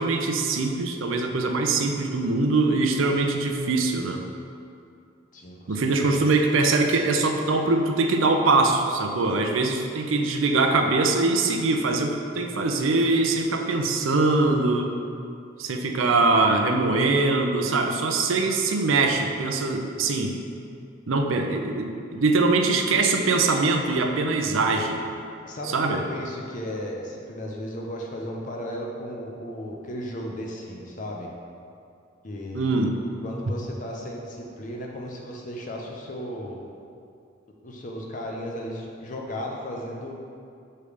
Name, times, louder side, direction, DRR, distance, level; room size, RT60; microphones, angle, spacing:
voice 1, 0.0-4.2 5.7-14.9 15.6-20.3 21.1-25.0 25.7-26.0 32.5-32.9, right 3 dB, 85° right, 4 dB, 0.6 m, -22 dB
voice 2, 5.3-6.3 25.4-31.3 32.2-32.8 33.2-36.7 37.6-40.1, equal, 40° left, 0 dB, 0.6 m, -35 dB
6.7 x 3.3 x 5.0 m, 2.4 s
head